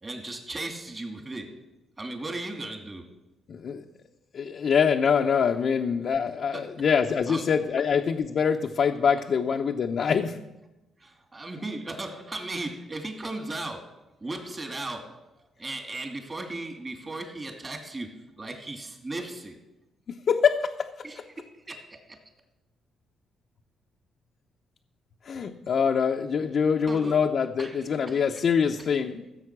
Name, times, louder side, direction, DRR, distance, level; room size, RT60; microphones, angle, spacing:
voice 1, 0.0-1.6 2.0-3.1 6.5-6.7 7.3-7.4 11.0-13.9 14.2-15.2 15.6-19.6 21.0-22.2 26.9-27.2 27.6-28.2 28.8-28.9, right 2 dB, 25° right, 4 dB, 2.6 m, -36 dB
voice 2, 3.5-3.8 4.3-10.4 20.1-20.9 25.2-29.2, left 6 dB, 55° left, 2 dB, 0.8 m, -24 dB
15.0 x 7.6 x 6.1 m, 0.99 s
cardioid pair, 90°, 0 cm